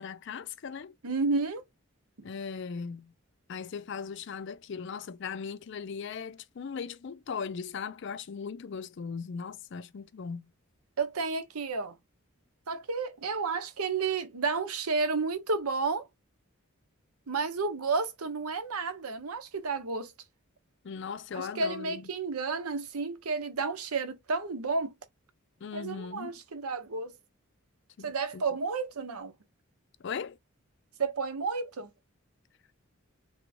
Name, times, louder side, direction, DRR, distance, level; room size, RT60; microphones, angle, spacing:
voice 1, 0.0-0.9 2.2-3.1 3.5-10.5 20.8-22.1 25.6-26.3 28.0-28.4 30.0-30.4, left 6 dB, 55° left, 0.4 m, -38 dB
voice 2, 1.0-1.6 11.0-12.0 12.7-16.1 17.3-20.1 21.3-24.9 25.7-27.1 28.0-29.3 31.0-31.9, right 4 dB, 85° right, 0.8 m, -31 dB
3.5 x 3.0 x 2.7 m
head